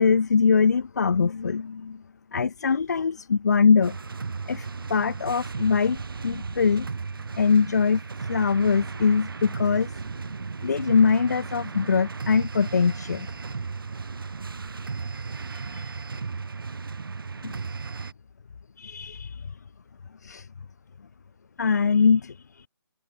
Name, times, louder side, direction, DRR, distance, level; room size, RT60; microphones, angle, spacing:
voice 1, 0.0-2.0 2.3-4.0 4.5-6.9 7.4-9.9 10.6-13.3 15.5-15.9 17.4-17.5 18.8-19.5 20.2-20.5 21.6-22.7, left 5 dB, 40° left, 0.4 m, -23 dB
sound 1, 3.8-18.1, right 4 dB, 60° right, 0.7 m, -35 dB
figure-of-eight pair, 150°, 13 cm